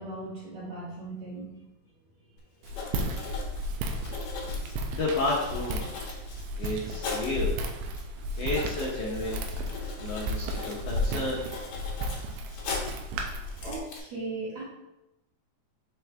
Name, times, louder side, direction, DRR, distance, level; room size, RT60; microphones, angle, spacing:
voice 1, 0.0-1.5 8.2-8.3 13.6-14.6, right 2 dB, 55° right, -6 dB, 2.9 m, -37 dB
Writing, 2.4-2.5 2.6-7.4 8.0-8.1 8.3-13.1 13.4-14.0, left 4 dB, 60° left, 2.3 m, -40 dB
Walk footsteps, 2.6-13.8, equal, 80° right, 2.1 m, -34 dB
voice 2, 4.9-5.9 6.6-7.5 8.4-9.4 10.0-11.4, left 2 dB, 80° left, -4 dB, 1.4 m, -31 dB
5.8 x 4.9 x 3.4 m, 0.92 s
omnidirectional pair, 4.2 m